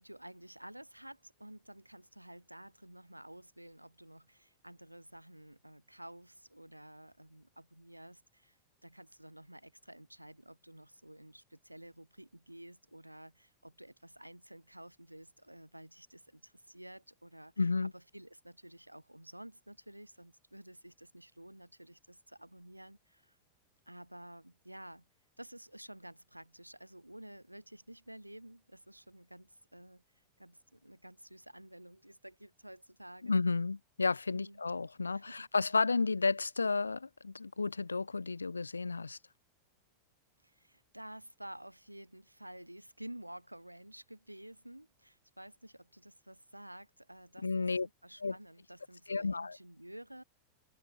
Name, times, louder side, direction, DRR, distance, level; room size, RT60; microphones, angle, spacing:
voice 1, 0.0-17.5 17.8-23.4 23.9-25.0 25.4-33.3 34.3-34.6 35.0-35.5 40.4-50.2, right 1 dB, 90° right, 6.6 m, -52 dB
voice 2, 17.6-17.9 33.2-39.2 47.4-47.9 48.2-48.3 49.1-49.6, left 4 dB, 80° left, 0.8 m, -32 dB
open air
figure-of-eight pair, 90°, 0 cm